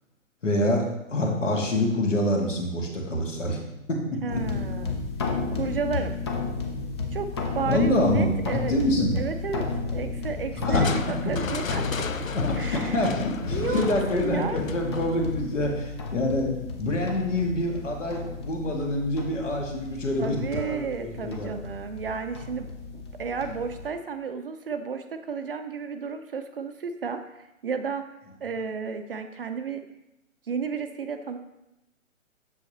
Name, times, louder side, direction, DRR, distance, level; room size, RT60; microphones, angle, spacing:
voice 1, 0.4-3.6 3.9-4.2 7.7-9.2 10.5-10.8 12.3-16.5 16.8-21.5, left 1 dB, 65° left, 0 dB, 2.1 m, -26 dB
voice 2, 4.2-5.0 5.5-6.1 7.1-7.3 7.5-8.7 9.2-12.2 12.6-13.0 13.5-14.6 20.2-28.0 28.4-29.8 30.5-31.4, right 5 dB, 45° right, 8 dB, 0.6 m, -32 dB
sound 1, 4.3-23.9, left 4 dB, 20° left, 0.6 m, -33 dB
Crushing, 10.7-16.1, left 5 dB, 85° left, 0.6 m, -32 dB
7.8 x 6.9 x 3.0 m, 0.90 s
figure-of-eight pair, 130°, 39 cm